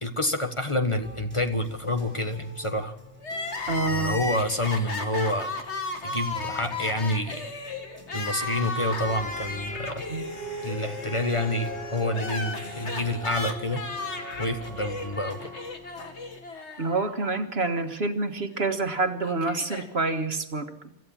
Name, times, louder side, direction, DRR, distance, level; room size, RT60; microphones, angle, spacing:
voice 1, 0.0-3.0 3.9-5.5 6.0-7.4 8.1-10.1 10.6-13.9 14.4-15.5, left 1 dB, 30° left, 6 dB, 1.5 m, -28 dB
sound 1, 1.0-16.4, equal, 10° right, 3.6 m, -48 dB
Crying sobbing, 3.2-17.4 17.6-17.7 18.7-19.9, left 3 dB, 85° left, 2.3 m, -35 dB
voice 2, 3.7-4.2 10.1-10.3 16.8-20.7, right 3 dB, 65° right, 7 dB, 1.8 m, -27 dB
sound 2, 8.8-15.6, right 1 dB, 65° left, 6.2 m, -41 dB
26.0 x 14.0 x 7.4 m, 0.85 s
omnidirectional pair, 1.1 m